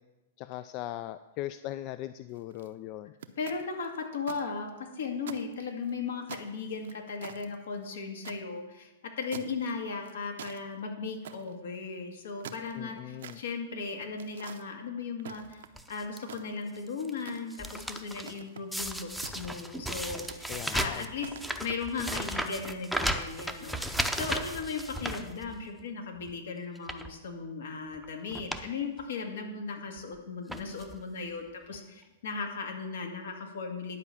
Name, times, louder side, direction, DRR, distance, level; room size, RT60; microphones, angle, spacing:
voice 1, 0.4-3.1 12.8-13.4 20.5-21.1, left 14 dB, 40° left, 12 dB, 0.3 m, -39 dB
sound 1, 2.3-2.7 3.2-4.4 4.8-4.9 5.2-5.9 6.3-8.4 9.3-9.7 10.0-10.6 11.2-11.6 12.2-13.4 14.2-14.6 15.2-15.8 16.2-16.8 17.3-17.7 18.2-18.7 19.2-19.8 20.2-20.6 21.2-21.6, right 8 dB, 75° right, 0.7 m, -46 dB
voice 2, 3.4-8.9 9.2-15.6 15.9-21.3 21.6-34.0, left 4 dB, 75° left, 3 dB, 2.0 m, -37 dB
sound 2, 15.8-16.2 16.8-17.1 17.4-18.3 18.7-25.8 26.2-26.3 26.8-27.1 27.9-28.1 28.3-28.7 29.0-29.1 30.0-30.1 30.5-31.0 31.7-31.8 32.0-32.1, right 1 dB, ahead, 0.7 m, -35 dB
11.0 x 4.9 x 7.2 m, 1.1 s
hypercardioid pair, 130°, 0 cm